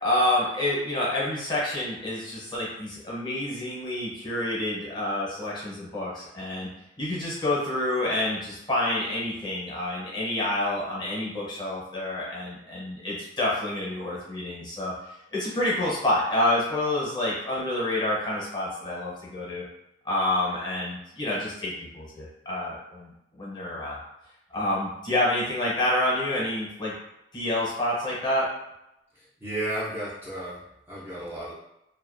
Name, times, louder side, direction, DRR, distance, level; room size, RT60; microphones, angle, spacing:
voice 1, 0.0-6.7 7.0-14.9 15.3-19.6 20.0-24.0 24.5-26.9 27.3-28.5, left 1 dB, 25° left, -6 dB, 0.7 m, -28 dB
voice 2, 29.1-31.5, right 1 dB, 10° right, -9 dB, 0.5 m, -34 dB
2.4 x 2.2 x 2.4 m, 0.86 s
head